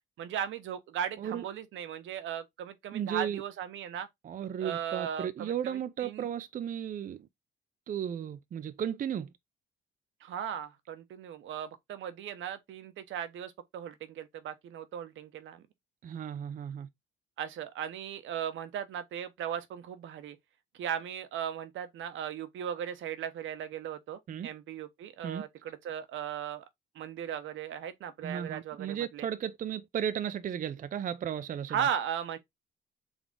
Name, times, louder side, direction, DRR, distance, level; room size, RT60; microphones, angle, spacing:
voice 1, 0.2-4.1 4.6-6.3 10.2-15.7 17.4-20.4 20.8-26.6 26.9-29.3 31.7-32.4, right 9 dB, 75° right, 0.8 m, -37 dB
voice 2, 2.9-3.4 4.2-7.3 7.9-9.3 16.0-16.9 24.3-24.5 25.2-25.4 28.2-31.8, right 9 dB, 45° right, 0.4 m, -35 dB
3.8 x 3.5 x 3.5 m
cardioid pair, 90°, 20 cm